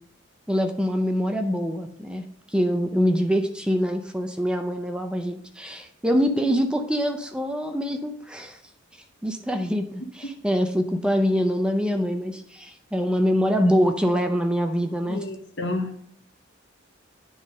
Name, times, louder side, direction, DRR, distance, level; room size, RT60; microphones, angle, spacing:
voice 1, 0.5-8.6 9.2-15.3, equal, 5° right, 5 dB, 0.5 m, -24 dB
voice 2, 15.1-16.0, left 2 dB, 65° left, 6 dB, 1.1 m, -30 dB
9.6 x 3.7 x 5.0 m, 0.66 s
head